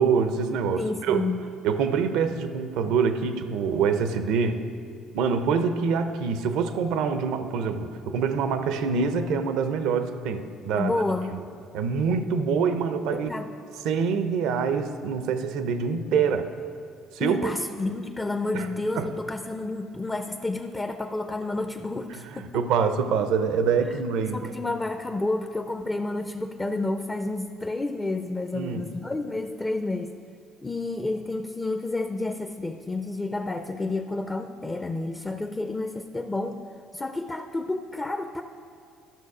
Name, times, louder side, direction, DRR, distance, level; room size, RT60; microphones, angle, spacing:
voice 1, 0.0-1.2 1.6-4.6 5.1-10.9 11.3-11.4 11.7-13.3 13.8-16.5 17.1-17.5 18.5-18.7 19.0-19.1 22.3-24.5 28.5-28.8, right 6 dB, 75° right, 9 dB, 0.7 m, -25 dB
voice 2, 0.8-1.5 10.8-11.4 13.1-13.5 17.2-22.5 24.3-30.1 30.6-36.6 36.9-38.4, left 2 dB, 20° left, 6 dB, 0.6 m, -30 dB
12.0 x 6.3 x 4.9 m, 2.3 s
supercardioid pair, 70°, 0 cm